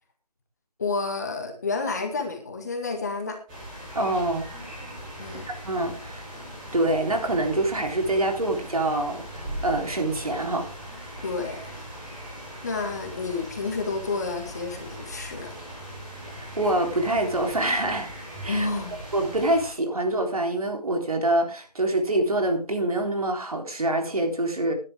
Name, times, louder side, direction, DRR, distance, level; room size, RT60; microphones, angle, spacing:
voice 1, 0.8-3.4 5.2-5.5 11.2-11.6 12.6-15.5 18.5-19.0, left 3 dB, 25° left, 4 dB, 1.9 m, -30 dB
sound 1, 3.5-19.7, equal, 10° right, 4.5 m, -39 dB
voice 2, 3.9-4.5 5.6-6.3 6.7-10.7 16.3-18.1 18.4-18.7 19.1-24.7, right 1 dB, 60° right, 4 dB, 3.7 m, -25 dB
14.5 x 11.0 x 3.6 m, 0.35 s
figure-of-eight pair, 165°, 21 cm